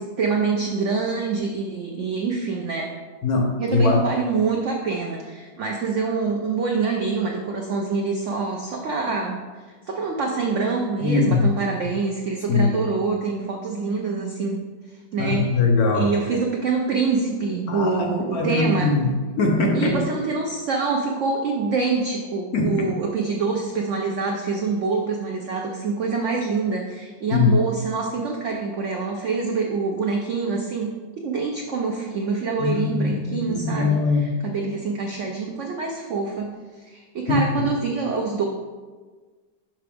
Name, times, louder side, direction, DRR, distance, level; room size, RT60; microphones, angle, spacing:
voice 1, 0.0-2.9 3.6-15.5 15.9-19.0 19.7-36.5 36.8-38.4, right 4 dB, 75° right, 1 dB, 0.6 m, -26 dB
voice 2, 3.2-4.1 11.0-11.5 12.5-12.8 15.2-16.1 17.7-20.0 22.5-23.0 27.3-27.6 32.6-34.4 37.3-37.7, left 3 dB, 65° left, 2 dB, 1.1 m, -21 dB
5.9 x 5.6 x 3.4 m, 1.4 s
omnidirectional pair, 2.0 m